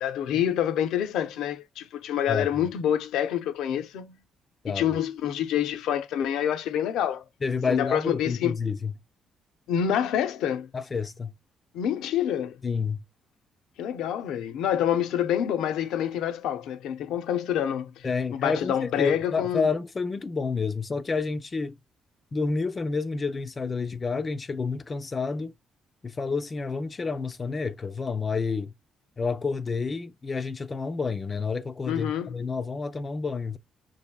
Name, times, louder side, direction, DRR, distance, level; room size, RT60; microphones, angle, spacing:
voice 1, 0.0-4.2 4.7-7.2 7.7-8.6 9.7-10.7 11.7-12.6 13.8-19.7 31.9-32.4, left 9 dB, 85° left, 0.5 m, -27 dB
voice 2, 7.4-8.9 10.7-11.3 12.6-13.0 18.0-21.8 22.3-25.5 26.0-28.7 29.2-33.6, left 4 dB, 30° left, 0.4 m, -29 dB
5.6 x 2.6 x 2.2 m
cardioid pair, 90°, 0 cm